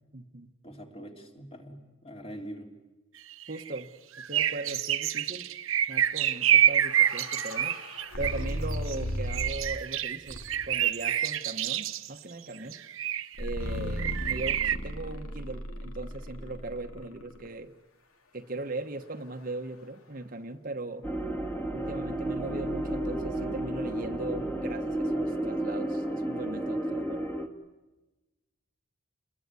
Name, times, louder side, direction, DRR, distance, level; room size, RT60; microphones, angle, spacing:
voice 1, 0.1-0.5 3.5-3.9 4.3-5.5 5.9-7.8 8.2-12.8 13.4-17.7 18.3-21.1 21.7-27.3, right 2 dB, 40° right, 6 dB, 1.1 m, -39 dB
voice 2, 0.6-2.7, equal, 25° left, 3 dB, 3.1 m, -43 dB
sound 1, 3.3-3.8 4.2-8.9 9.3-12.1 12.7-13.4 14.0-14.8, right 11 dB, 70° right, 1.0 m, -27 dB
sound 2, 6.5-9.8 10.3-10.8 13.4-17.5, equal, 85° left, 2.9 m, -36 dB
sound 3, 21.0-27.5, right 1 dB, 10° left, 2.1 m, -32 dB
29.0 x 21.5 x 9.6 m, 1.1 s
head